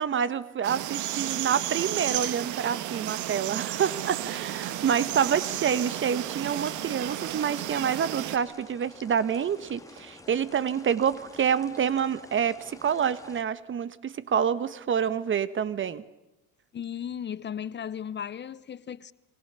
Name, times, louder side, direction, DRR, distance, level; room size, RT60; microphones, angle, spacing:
voice 1, 0.0-16.0, right 8 dB, 40° right, 1.2 m, -27 dB
sound 1, 0.6-8.4, right 13 dB, 65° right, 1.8 m, -33 dB
sound 2, 3.8-13.4, left 2 dB, 10° left, 2.8 m, -50 dB
voice 2, 16.7-19.1, left 8 dB, 35° left, 0.9 m, -36 dB
29.5 x 24.0 x 6.8 m
supercardioid pair, 80°, 32 cm